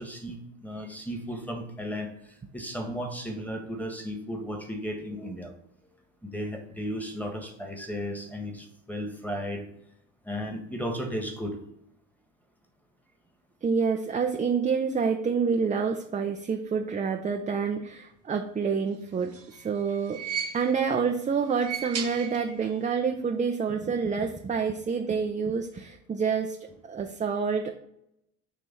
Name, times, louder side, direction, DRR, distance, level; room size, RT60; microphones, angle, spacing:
voice 1, 0.0-5.5 6.2-9.6 10.2-11.6, equal, 5° left, 4 dB, 1.6 m, -35 dB
voice 2, 13.6-20.2 20.5-26.6 26.9-27.7, right 5 dB, 20° right, 3 dB, 0.6 m, -28 dB
sound 1, 19.1-21.0 21.5-22.9 23.1-23.2 24.3-24.4, right 7 dB, 40° right, 1.1 m, -37 dB
7.0 x 3.0 x 5.4 m, 0.76 s
hypercardioid pair, 70°, 38 cm